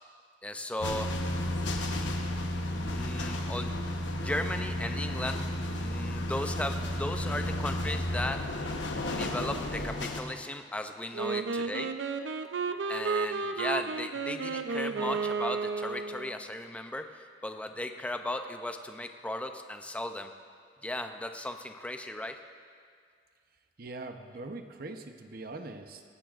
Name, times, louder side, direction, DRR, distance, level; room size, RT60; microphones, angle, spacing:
voice 1, 0.4-1.1 1.6-1.8 2.7-3.8 4.1-5.5 5.8-8.5 9.0-12.0 12.9-20.3 20.8-22.4, left 1 dB, 5° left, 6 dB, 0.5 m, -36 dB
sound 1, 0.8-10.2, left 1 dB, 80° left, 1.0 m, -33 dB
Wind instrument woodwind instrument, 11.1-16.3, right 4 dB, 90° right, 0.6 m, -32 dB
voice 2, 23.8-26.0, right 2 dB, 55° right, 6 dB, 0.8 m, -42 dB
18.5 x 15.0 x 2.5 m, 2.1 s
head